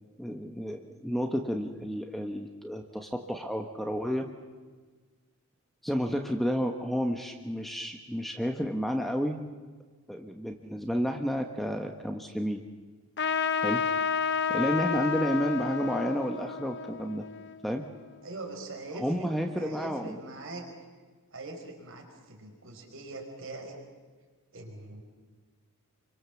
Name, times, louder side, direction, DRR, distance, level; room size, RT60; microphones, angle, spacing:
voice 1, 0.2-4.3 5.8-9.4 10.1-12.6 13.6-13.8 14.5-17.2 17.6-17.8 18.9-20.2, equal, ahead, 3 dB, 1.3 m, -31 dB
Trumpet, 13.2-18.2, left 6 dB, 50° left, 0.9 m, -31 dB
voice 2, 18.2-19.3 19.6-20.6 21.3-23.8 24.5-25.0, right 2 dB, 60° right, 2 dB, 4.8 m, -42 dB
28.5 x 24.5 x 7.2 m, 1.4 s
head